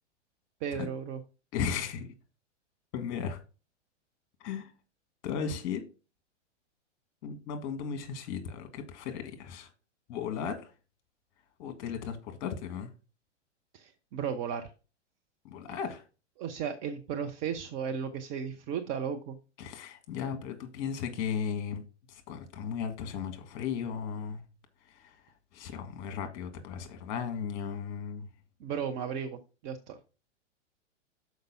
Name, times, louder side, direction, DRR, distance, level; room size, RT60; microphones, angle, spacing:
voice 1, 0.6-1.2 13.7-14.7 16.4-19.4 28.6-30.0, right 7 dB, 20° right, 0.4 m, -35 dB
voice 2, 1.5-2.1 2.9-3.4 4.4-4.7 5.2-5.8 7.2-9.7 10.1-10.6 11.6-12.9 15.4-16.0 19.6-21.8 22.1-24.4 25.0-25.2 25.5-28.3, left 7 dB, 40° left, 1.8 m, -36 dB
6.5 x 5.1 x 5.5 m
figure-of-eight pair, 110°, 36 cm